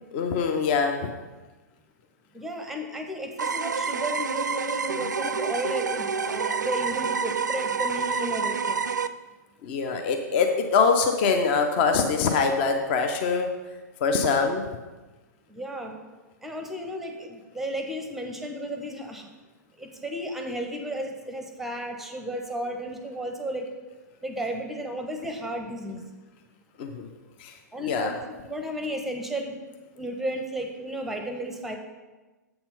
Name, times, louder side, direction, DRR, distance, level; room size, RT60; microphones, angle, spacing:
voice 1, 0.1-1.0 9.6-13.5 14.0-14.6 26.8-27.1 27.4-27.5 27.8-28.1, left 5 dB, 35° left, 4 dB, 0.6 m, -23 dB
voice 2, 2.3-8.8 15.5-16.0 16.4-19.3 19.8-23.7 24.2-26.0 27.7-29.6 30.0-31.8, right 1 dB, 5° right, 4 dB, 0.7 m, -33 dB
sound 1, 3.4-9.1, right 5 dB, 75° right, 0.4 m, -28 dB
7.7 x 4.4 x 5.4 m, 1.2 s
figure-of-eight pair, 110°, 10 cm